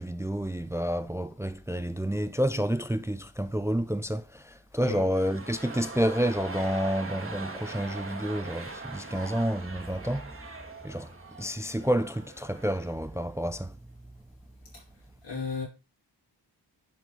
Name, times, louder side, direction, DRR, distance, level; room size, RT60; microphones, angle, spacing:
voice 1, 0.0-10.4 10.8-13.8, equal, 5° right, 0.5 m, -29 dB
sound 1, 4.9-13.0 13.3-13.4, right 3 dB, 30° right, 1.3 m, -42 dB
voice 2, 15.2-15.6, left 5 dB, 85° left, 4.6 m, -33 dB
10.5 x 4.3 x 4.3 m
wide cardioid pair, 60°, 42 cm